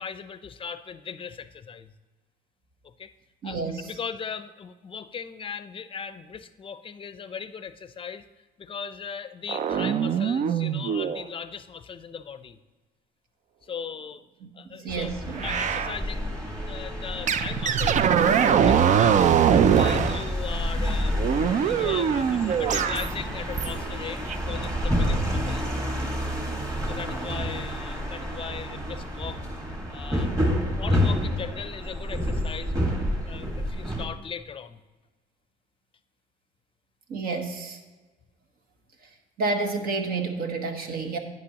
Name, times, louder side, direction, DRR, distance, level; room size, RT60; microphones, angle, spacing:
voice 1, 0.0-1.9 2.8-3.1 3.4-8.2 8.6-12.6 13.6-14.2 14.5-15.1 15.4-16.4 16.6-18.1 18.4-19.4 19.8-21.2 21.5-26.0 26.9-29.4 29.9-30.4 30.8-32.8 33.3-34.8, left 6 dB, 30° left, 12 dB, 0.6 m, -38 dB
voice 2, 3.4-3.9 14.4-15.5 37.1-37.8 39.4-41.2, right 3 dB, 60° right, 4 dB, 1.3 m, -30 dB
sound 1, 9.5-11.2 15.4-16.0 17.3-20.3 21.2-23.1 23.6-23.9 24.3-24.4, right 8 dB, 45° right, 0.5 m, -22 dB
sound 2, 14.9-34.0, equal, 20° right, 1.7 m, -29 dB
11.5 x 9.1 x 2.9 m, 1.3 s
cardioid pair, 110°, 17 cm